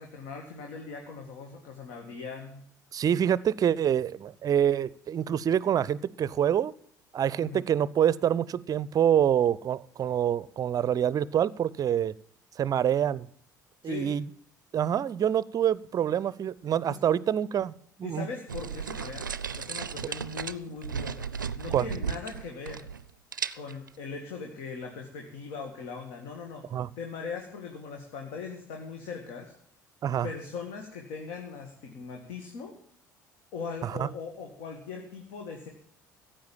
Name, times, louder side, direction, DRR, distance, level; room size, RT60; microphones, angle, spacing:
voice 1, 0.0-2.6 7.4-7.6 13.8-14.1 16.9-17.0 18.0-19.3 19.6-22.9 23.5-26.6 27.0-29.5 30.2-32.7 33.5-35.7, left 5 dB, 60° left, 3 dB, 2.1 m, -40 dB
voice 2, 2.9-6.7 7.1-12.1 12.6-13.3 13.8-14.2 14.7-18.3 21.7-21.9 26.7-26.9 30.0-30.3 33.8-34.1, right 9 dB, 35° right, 21 dB, 0.6 m, -26 dB
sound 1, 18.5-23.1 23.3-23.9, right 7 dB, 80° right, 0.5 m, -35 dB
15.5 x 8.8 x 7.2 m, 0.63 s
figure-of-eight pair, 55°, 10 cm